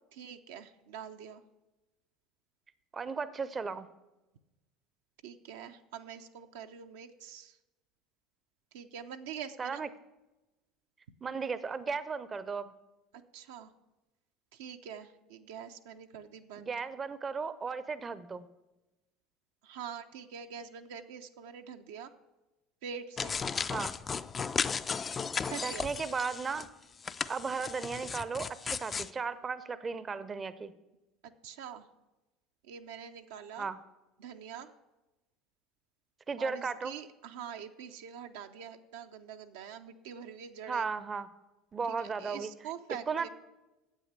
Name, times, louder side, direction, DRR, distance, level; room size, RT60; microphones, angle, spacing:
voice 1, 0.1-1.4 5.2-7.6 8.7-9.8 13.1-13.7 14.5-16.7 19.6-22.1 22.8-23.4 25.5-25.9 26.5-26.7 31.2-31.9 32.6-33.7 34.2-34.7 36.4-40.9 41.9-43.3, right 8 dB, 75° right, 6 dB, 0.6 m, -45 dB
voice 2, 2.9-3.9 9.6-9.9 11.2-12.7 16.6-18.5 23.7-23.9 25.6-26.7 27.3-30.7 33.6-33.8 36.3-36.9 40.7-41.3 41.7-42.5 43.1-43.3, right 5 dB, 30° right, 15 dB, 0.6 m, -35 dB
sound 1, 23.2-26.7 27.0-29.1, left 5 dB, 30° left, 0.4 m, -35 dB
9.1 x 7.8 x 6.6 m, 1.0 s
hypercardioid pair, 70°, 0 cm